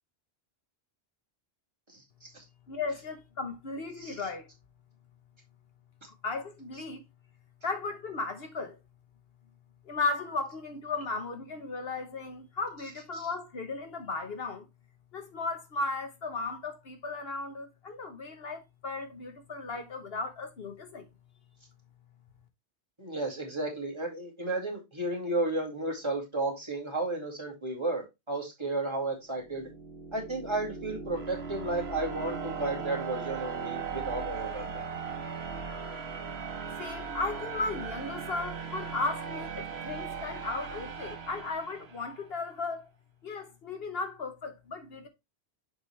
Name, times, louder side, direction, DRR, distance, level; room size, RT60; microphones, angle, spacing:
voice 1, 2.7-4.5 6.2-7.0 7.6-8.8 9.8-14.7 15.1-21.0 36.8-42.9 43.2-45.1, left 3 dB, 65° left, 1.2 m, -35 dB
voice 2, 23.0-29.7 30.1-34.8, right 2 dB, 25° right, 2.2 m, -33 dB
sound 1, 29.3-42.2, right 5 dB, 70° right, 1.3 m, -38 dB
6.7 x 5.2 x 3.2 m
omnidirectional pair, 1.1 m